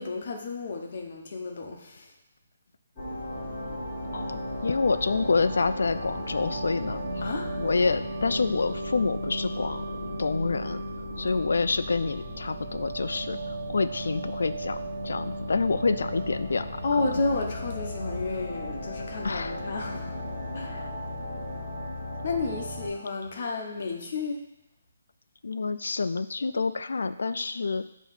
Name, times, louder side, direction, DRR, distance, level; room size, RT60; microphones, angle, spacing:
voice 1, 0.0-2.1 7.2-7.5 16.8-20.2 20.5-20.8 22.2-24.4, left 3 dB, 40° left, 1 dB, 1.0 m, -31 dB
sound 1, 3.0-22.9, equal, 10° left, 2.1 m, -35 dB
voice 2, 4.1-7.2 7.6-10.8 11.2-17.1 19.2-19.6 20.7-20.9 25.4-27.8, left 4 dB, 90° left, 11 dB, 0.4 m, -28 dB
7.1 x 3.1 x 5.7 m, 0.91 s
hypercardioid pair, 180°, 0 cm